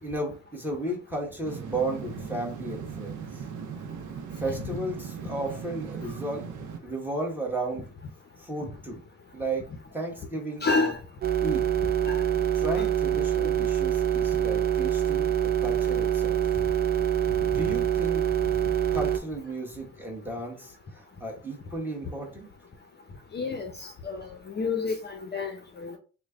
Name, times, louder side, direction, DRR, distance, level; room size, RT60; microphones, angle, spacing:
voice 1, 0.0-3.4 4.4-6.5 6.8-7.9 8.4-9.0 9.3-9.7 9.9-10.9 11.4-11.7 12.6-16.4 17.4-18.2 18.9-22.5, right 2 dB, 5° right, 1.3 m, -34 dB
sound 1, 1.4-6.8, right 6 dB, 75° right, 0.6 m, -38 dB
voice 2, 10.6-11.0 12.1-12.2 12.8-12.9 23.3-26.0, left 4 dB, 35° left, 0.7 m, -29 dB
sound 2, 11.2-19.2, right 10 dB, 30° right, 0.4 m, -25 dB
3.1 x 2.2 x 3.6 m
cardioid pair, 90°, 30 cm